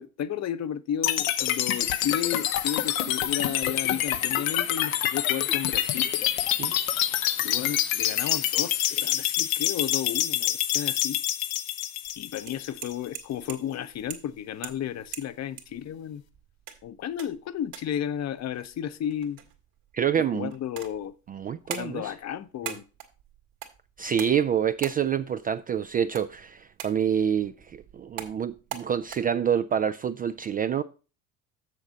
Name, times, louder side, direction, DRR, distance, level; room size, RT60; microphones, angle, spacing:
voice 1, 0.0-6.1 7.4-11.2 12.2-16.2 16.8-19.4 20.2-21.1 21.7-22.8, left 10 dB, 40° left, 0.8 m, -33 dB
sound 1, 1.0-13.1, left 12 dB, 80° left, 0.9 m, -26 dB
sound 2, 12.0-29.2, right 10 dB, 55° right, 1.9 m, -44 dB
voice 2, 19.9-20.5 21.3-22.1 22.6-22.7 24.0-30.8, right 8 dB, 25° right, 0.3 m, -27 dB
7.0 x 6.6 x 5.1 m
hypercardioid pair, 70°, 40 cm